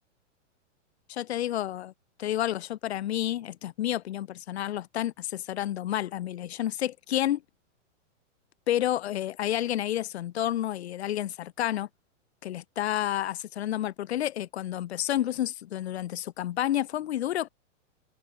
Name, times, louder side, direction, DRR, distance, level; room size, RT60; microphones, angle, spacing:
voice 1, 1.1-1.9 2.2-7.4 8.7-11.9 12.4-17.5, left 12 dB, 55° left, 6.6 m, -30 dB
supercardioid pair, 175°, 37 cm